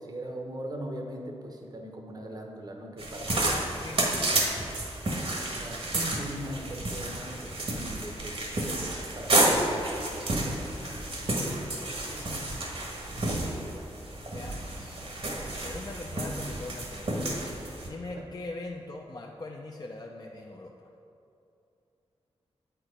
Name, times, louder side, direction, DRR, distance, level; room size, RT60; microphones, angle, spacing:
voice 1, 0.0-3.7 4.1-4.4 5.5-9.6 11.9-12.5 18.1-18.2, right 1 dB, 35° right, 2 dB, 0.8 m, -40 dB
sound 1, 3.0-17.9, right 1 dB, 60° right, 1.2 m, -30 dB
voice 2, 3.3-4.2 10.6-11.1 13.4-13.6 14.3-15.0 15.6-17.2 17.9-20.9, left 2 dB, 35° left, 0 dB, 0.5 m, -42 dB
7.8 x 4.5 x 5.0 m, 2.7 s
cardioid pair, 50°, 11 cm